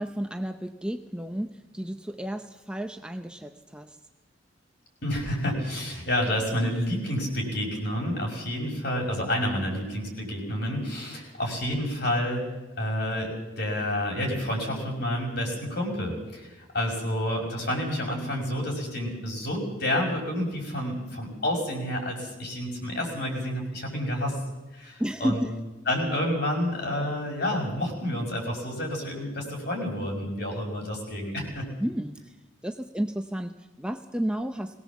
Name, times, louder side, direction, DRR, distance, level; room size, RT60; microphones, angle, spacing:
voice 1, 0.0-4.0 25.0-25.5 31.8-32.3 32.6-34.8, equal, 5° right, 6 dB, 0.6 m, -32 dB
voice 2, 5.0-12.5 12.8-24.4 24.7-25.4 25.9-31.7, left 1 dB, 55° left, 1 dB, 5.8 m, -29 dB
21.5 x 18.0 x 7.3 m, 1.1 s
head